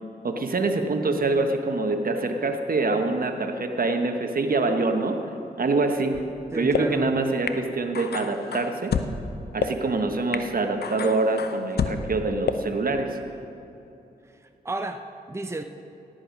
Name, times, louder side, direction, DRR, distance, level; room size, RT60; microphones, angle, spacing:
voice 1, 0.2-5.2 5.6-6.2 6.5-8.9 9.5-13.2, right 3 dB, 55° right, 5 dB, 1.3 m, -25 dB
sound 1, 6.1-6.2 6.7-6.8 7.5-7.6 7.9-9.1 9.6-9.7 10.3-10.4 10.8-12.0 12.5-12.6, left 7 dB, 65° left, 0.7 m, -28 dB
voice 2, 6.5-7.1 14.6-15.6, right 2 dB, 15° right, 7 dB, 0.8 m, -31 dB
17.0 x 9.1 x 5.2 m, 2.8 s
supercardioid pair, 40°, 18 cm